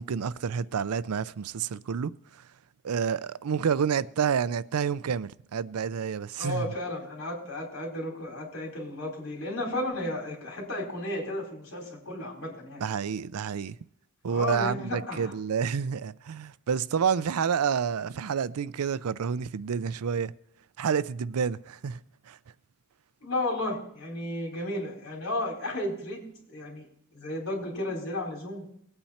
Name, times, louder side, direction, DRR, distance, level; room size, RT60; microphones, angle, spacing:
voice 1, 0.0-2.1 2.8-6.7 12.8-13.8 14.2-20.3 20.8-22.0 22.3-22.4, right 7 dB, 90° right, 0.4 m, -29 dB
voice 2, 6.4-12.8 14.3-15.3 23.2-26.2 26.5-26.9 27.1-28.6, left 1 dB, 75° left, 4.2 m, -33 dB
20.0 x 8.8 x 4.3 m
head